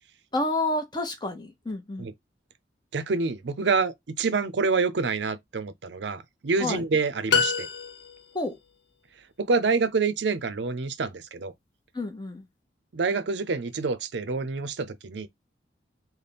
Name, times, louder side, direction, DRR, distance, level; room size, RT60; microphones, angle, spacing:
voice 1, 0.3-2.1 6.6-6.8 8.3-8.6 11.9-12.5, left 2 dB, 25° left, 0.7 m, -29 dB
voice 2, 2.9-7.7 9.4-11.5 12.9-15.3, right 4 dB, 75° right, 0.5 m, -27 dB
sound 1, 7.3-8.4, left 6 dB, 70° left, 0.5 m, -26 dB
3.4 x 2.1 x 4.0 m
head